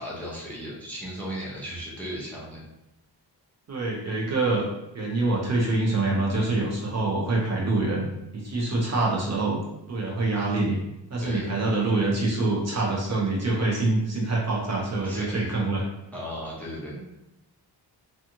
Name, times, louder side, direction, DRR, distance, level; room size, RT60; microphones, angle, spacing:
voice 1, 0.0-2.6 11.2-11.5 15.0-15.5 16.1-17.0, equal, 5° left, -6 dB, 0.5 m, -36 dB
voice 2, 3.7-4.6 4.9-8.1 8.3-9.6 9.9-10.8 11.1-15.8 16.9-17.0, right 2 dB, 40° right, -3 dB, 0.6 m, -25 dB
2.8 x 2.3 x 2.6 m, 0.91 s
wide cardioid pair, 160°, 42 cm